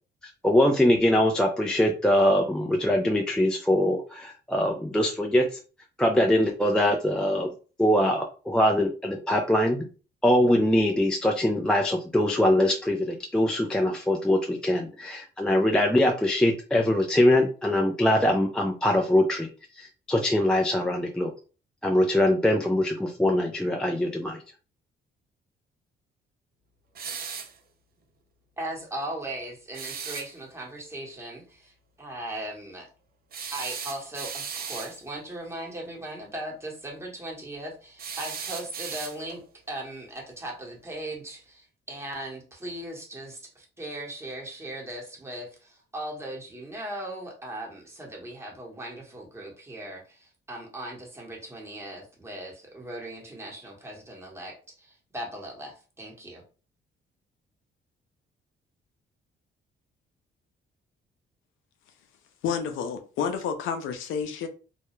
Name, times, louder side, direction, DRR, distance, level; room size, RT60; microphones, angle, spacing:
voice 1, 0.4-5.6 6.0-7.5 7.8-9.9 10.2-19.5 19.8-21.3 21.8-24.4, left 1 dB, 5° left, 0.3 m, -23 dB
sound 1, 26.9-27.6 29.7-30.3 33.3-35.0 38.0-39.4, right 6 dB, 50° right, 0.5 m, -36 dB
voice 2, 28.6-31.7 32.0-32.9 33.5-39.4 39.7-56.4, right 1 dB, 15° right, 1.0 m, -38 dB
voice 3, 62.4-64.5, left 6 dB, 85° left, 0.5 m, -30 dB
2.3 x 2.0 x 2.9 m
cardioid pair, 90°, 20 cm